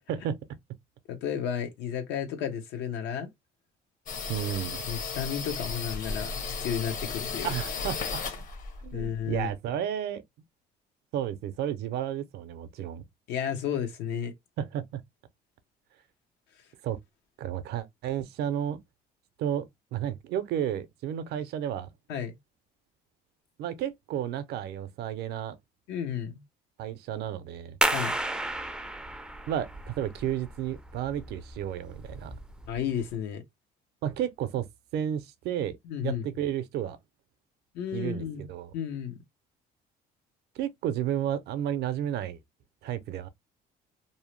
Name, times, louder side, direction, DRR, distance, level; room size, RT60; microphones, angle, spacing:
voice 1, 1.1-3.3 4.9-6.3 6.6-7.5 8.9-9.5 13.3-14.3 22.1-22.4 25.9-26.3 27.9-28.1 32.7-33.4 35.8-36.2 37.7-38.5 38.7-39.2, left 8 dB, 90° left, 0.8 m, -32 dB
sound 1, 4.1-9.5, left 5 dB, 50° left, 0.8 m, -35 dB
voice 2, 4.3-4.8 7.4-8.2 8.8-10.2 11.1-13.0 14.6-15.0 16.8-17.0 17.4-18.8 19.4-21.9 23.6-25.6 26.8-27.7 29.5-29.7 30.0-32.4 34.0-34.7 34.9-35.8 36.0-37.0 37.9-38.7 40.6-42.4 42.8-43.3, right 10 dB, 75° right, 0.5 m, -32 dB
sound 2, 27.8-33.1, right 1 dB, 5° right, 0.3 m, -33 dB
2.7 x 2.0 x 3.0 m
cardioid pair, 110°, 17 cm